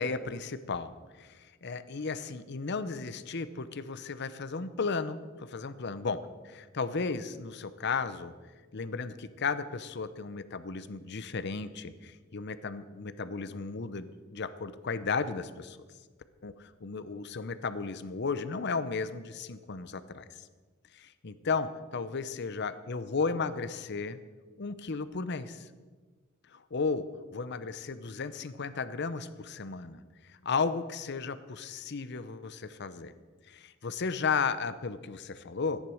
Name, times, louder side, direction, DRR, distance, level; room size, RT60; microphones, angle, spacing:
voice 1, 0.0-8.3 8.7-15.8 16.4-20.5 20.9-24.2 24.6-25.7 26.5-30.0 30.3-33.1 33.5-35.8, left 4 dB, 55° left, 13 dB, 0.7 m, -34 dB
14.0 x 10.0 x 6.3 m, 1.4 s
head